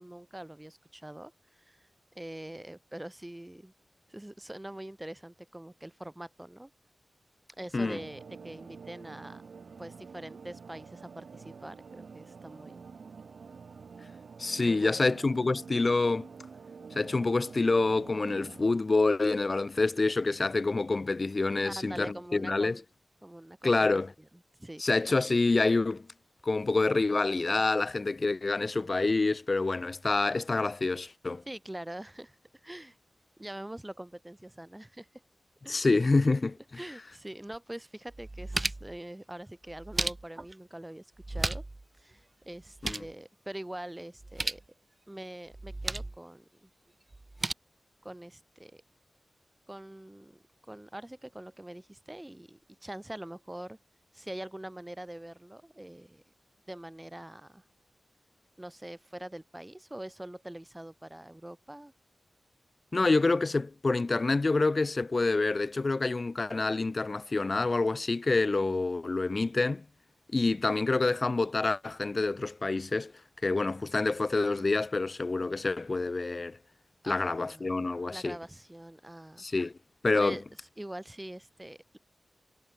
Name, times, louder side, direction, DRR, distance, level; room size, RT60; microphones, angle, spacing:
voice 1, 0.0-1.9 2.1-3.7 4.1-6.7 7.6-9.4 9.8-12.8 14.6-15.2 21.6-22.8 23.2-23.9 24.6-24.8 31.5-32.4 32.6-33.0 33.4-35.1 35.6-35.9 36.8-41.6 42.0-44.6 45.1-46.7 48.0-48.8 49.7-50.4 50.7-53.8 54.1-56.2 56.7-57.6 58.6-61.9 77.0-77.7 78.1-79.4 80.1-80.4 80.8-82.0, right 1 dB, 15° right, 6.0 m, -44 dB
sound 1, 7.8-18.7, right 5 dB, 80° right, 7.5 m, -48 dB
voice 2, 14.4-16.3 17.0-22.8 23.6-24.1 24.8-26.1 26.4-31.4 35.7-36.6 42.8-43.0 62.9-69.8 70.3-73.1 73.4-76.6 77.0-78.4 79.4-79.7 80.0-80.4, left 3 dB, 40° left, 3.9 m, -27 dB
sound 2, 37.5-37.6 38.1-39.0 39.7-40.5 41.2-41.8 42.1-42.2 42.5-43.1 44.2-44.7 45.5-46.2 47.1-47.5, right 2 dB, 30° right, 6.5 m, -34 dB
wide cardioid pair, 85°, 0 cm